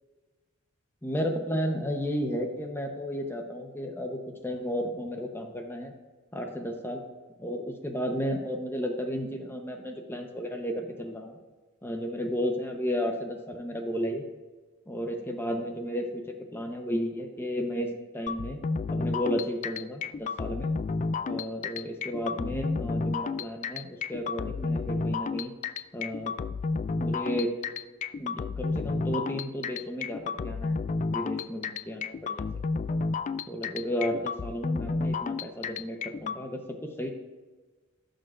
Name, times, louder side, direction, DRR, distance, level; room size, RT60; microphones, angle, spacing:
voice 1, 1.0-4.2 4.4-5.9 6.3-7.0 7.4-11.3 11.8-14.2 14.9-16.2 16.5-17.9 18.1-18.6 18.9-20.7 21.2-25.5 25.9-26.3 27.0-27.5 28.2-30.8 31.1-32.5 33.5-37.1, equal, 10° left, 3 dB, 0.8 m, -33 dB
sound 1, 18.3-36.4, left 4 dB, 35° left, 0.3 m, -31 dB
15.5 x 6.5 x 2.5 m, 1.3 s
head